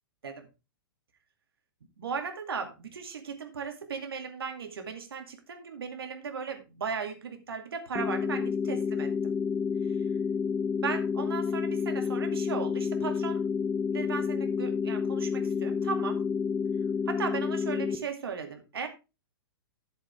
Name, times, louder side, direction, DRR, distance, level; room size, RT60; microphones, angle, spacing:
voice 1, 2.0-9.3 9.8-10.0 10.8-13.4 13.9-16.2 17.1-18.9, right 6 dB, 75° right, 5 dB, 2.3 m, -37 dB
sound 1, 8.0-18.0, left 6 dB, 15° left, 0.9 m, -29 dB
11.0 x 7.4 x 3.4 m, 0.27 s
hypercardioid pair, 115°, 13 cm